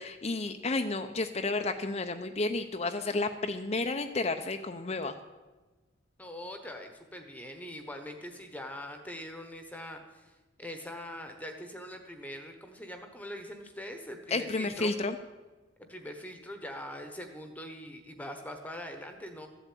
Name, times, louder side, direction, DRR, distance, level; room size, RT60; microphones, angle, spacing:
voice 1, 0.0-5.1 14.3-15.1, left 3 dB, 30° left, 6 dB, 0.6 m, -31 dB
voice 2, 6.2-14.9 15.9-19.5, left 1 dB, 5° left, 5 dB, 1.1 m, -42 dB
14.0 x 8.1 x 8.5 m, 1.2 s
head